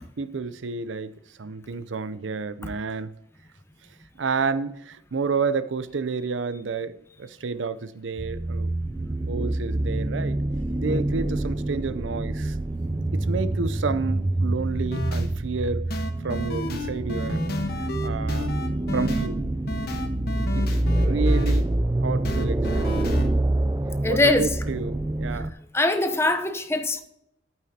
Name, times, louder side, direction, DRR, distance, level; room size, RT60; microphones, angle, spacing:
voice 1, 0.2-3.1 4.2-8.7 9.3-10.4 10.8-12.6 13.1-15.9 16.2-17.4 18.0-18.5 18.9-19.5 20.5-21.7 22.0-23.1 24.1-25.5, right 4 dB, 80° right, 0.5 m, -30 dB
sound 1, 8.2-25.5, right 1 dB, 20° right, 0.3 m, -26 dB
sound 2, 14.9-15.2 15.9-19.3 19.7-21.6 22.2-23.3, left 1 dB, 55° left, 1.2 m, -31 dB
voice 2, 24.0-24.5 25.3-25.4 25.7-27.0, left 2 dB, 15° left, 0.8 m, -22 dB
11.5 x 8.9 x 2.8 m
head